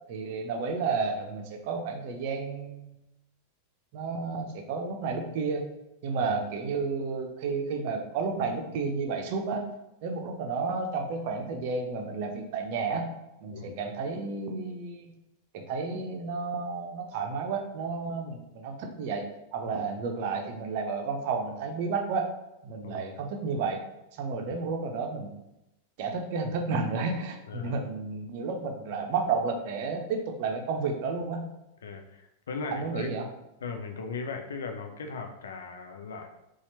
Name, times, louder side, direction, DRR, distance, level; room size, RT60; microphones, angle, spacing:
voice 1, 0.0-2.9 3.9-5.6 6.0-9.7 10.0-13.1 13.4-15.1 15.5-19.2 19.5-22.3 22.6-23.8 24.1-25.3 26.0-31.5 32.7-33.3, right 4 dB, 50° right, 4 dB, 0.6 m, -31 dB
voice 2, 27.5-27.8 31.8-33.1 33.6-36.3, left 4 dB, 65° left, 5 dB, 0.5 m, -38 dB
4.2 x 2.4 x 4.2 m, 0.90 s
figure-of-eight pair, 90°, 0 cm